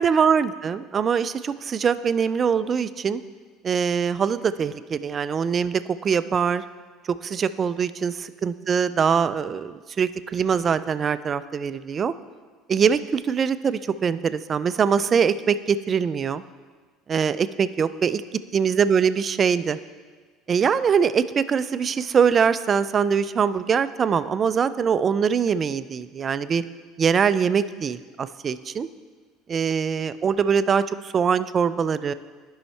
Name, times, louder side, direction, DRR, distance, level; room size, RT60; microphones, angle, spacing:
voice 1, 0.0-3.2 3.6-6.6 7.2-12.1 12.7-16.4 17.1-18.2 18.5-19.8 20.5-26.6 27.0-28.9 29.5-32.1, right 6 dB, 35° right, 14 dB, 0.3 m, -23 dB
11.0 x 5.5 x 3.2 m, 1.5 s
supercardioid pair, 100°, 0 cm